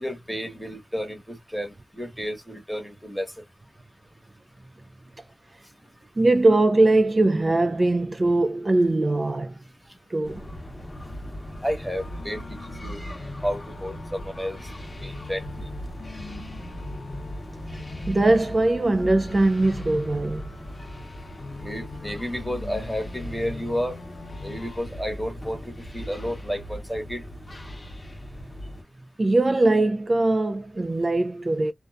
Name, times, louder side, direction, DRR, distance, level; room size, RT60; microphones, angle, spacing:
voice 1, 0.0-3.3 11.6-12.4 12.8-13.0 13.4-14.6 15.0-15.7 21.6-24.0 24.4-27.2, equal, ahead, 1.1 m, -31 dB
voice 2, 6.2-9.6 10.1-10.4 18.1-20.4 29.2-31.7, right 2 dB, 40° right, 0.3 m, -21 dB
sound 1, 10.2-28.8, equal, 30° left, 0.8 m, -39 dB
sound 2, 12.0-24.8, left 3 dB, 80° left, 0.7 m, -43 dB
2.4 x 2.2 x 2.3 m
wide cardioid pair, 70°, 0 cm